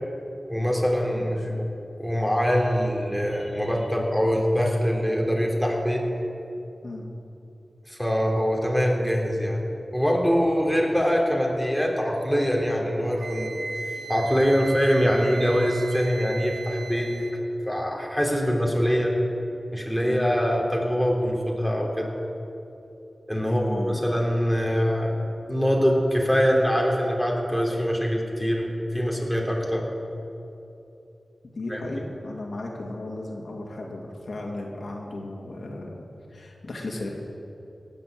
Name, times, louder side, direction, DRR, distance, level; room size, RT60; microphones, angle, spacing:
voice 1, 0.5-1.6 2.0-6.0 7.9-9.6 9.9-13.5 14.1-19.2 19.7-22.1 23.3-25.2 25.5-29.9 31.7-32.1, equal, 5° right, -1 dB, 3.2 m, -24 dB
voice 2, 1.1-1.6 6.8-7.1 20.0-20.3 23.4-24.1 31.5-36.0 36.3-37.1, left 2 dB, 70° left, -1 dB, 2.3 m, -35 dB
Wind instrument woodwind instrument, 13.2-17.4, right 4 dB, 80° right, 1.7 m, -37 dB
18.0 x 7.9 x 7.8 m, 2.8 s
cardioid pair, 50°, 0 cm